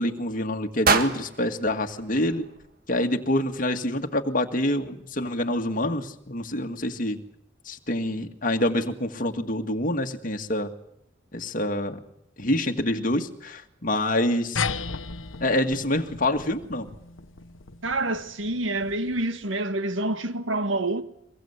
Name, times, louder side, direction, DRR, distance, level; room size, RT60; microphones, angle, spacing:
voice 1, 0.0-2.5 2.9-7.2 7.7-10.7 11.3-12.0 12.4-14.6 15.4-16.9, left 1 dB, 45° left, 1.9 m, -26 dB
sound 1, 0.8-3.0, right 4 dB, 50° right, 1.8 m, -27 dB
sound 2, 14.6-19.4, left 5 dB, 90° left, 1.1 m, -35 dB
voice 2, 17.8-21.0, right 2 dB, 80° right, 1.7 m, -27 dB
23.5 x 22.0 x 8.2 m
head